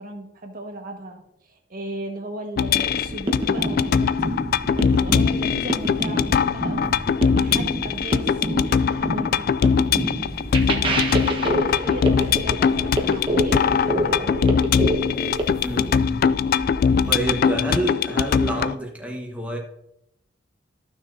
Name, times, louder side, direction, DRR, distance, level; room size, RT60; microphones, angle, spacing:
voice 1, 0.0-4.3 5.0-6.9 7.4-9.5 10.6-14.6 17.4-17.7, right 1 dB, 50° right, 2 dB, 1.6 m, -36 dB
sound 1, 2.6-18.7, left 6 dB, 55° left, 0.3 m, -22 dB
sound 2, 2.7-17.4, equal, 35° left, 1.5 m, -39 dB
sound 3, 3.0-15.4, equal, 30° right, 1.2 m, -27 dB
voice 2, 15.6-16.2 17.1-19.6, right 1 dB, 5° right, -1 dB, 1.3 m, -28 dB
14.5 x 6.4 x 2.7 m, 0.80 s
head